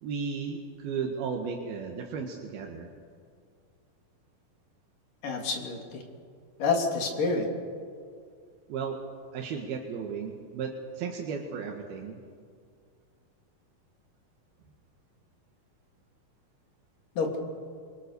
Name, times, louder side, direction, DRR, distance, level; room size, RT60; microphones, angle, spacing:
voice 1, 0.0-2.9 8.7-9.0 9.3-12.2, right 6 dB, 80° right, 1 dB, 3.5 m, -34 dB
voice 2, 5.2-6.0 6.6-7.5 17.2-17.4, left 4 dB, 60° left, 1 dB, 4.7 m, -28 dB
28.5 x 24.5 x 6.9 m, 2.1 s
omnidirectional pair, 4.3 m